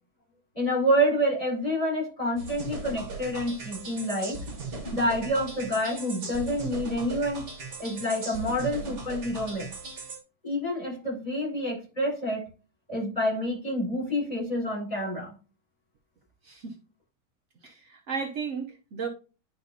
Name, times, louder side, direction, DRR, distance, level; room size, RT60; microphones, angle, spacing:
voice 1, 0.5-4.4 4.9-7.4 7.8-9.7 10.4-12.5 12.9-15.3, equal, 15° left, -2 dB, 4.5 m, -28 dB
sound 1, 2.4-10.2, right 3 dB, 35° right, 1.6 m, -38 dB
voice 2, 16.4-16.8 17.6-19.1, right 5 dB, 80° right, 2 dB, 0.6 m, -34 dB
10.5 x 5.0 x 2.7 m, 0.35 s
omnidirectional pair, 2.4 m